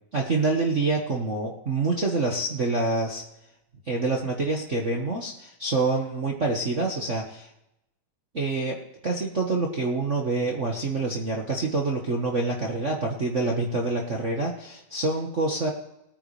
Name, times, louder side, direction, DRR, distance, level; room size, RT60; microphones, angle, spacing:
voice 1, 0.1-3.2 3.9-7.5 8.3-8.8 9.0-15.7, right 3 dB, 70° right, -1 dB, 0.6 m, -26 dB
20.5 x 9.4 x 3.3 m, 0.86 s
omnidirectional pair, 3.8 m